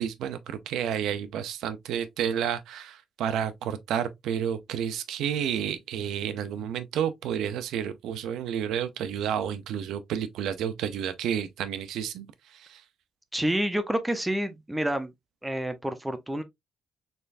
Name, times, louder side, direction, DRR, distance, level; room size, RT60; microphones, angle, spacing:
voice 1, 0.0-12.8, right 9 dB, 90° right, 0.6 m, -31 dB
voice 2, 13.3-15.1 15.4-16.4, right 1 dB, 5° right, 0.6 m, -28 dB
4.3 x 3.4 x 2.5 m
cardioid pair, 120°, 0 cm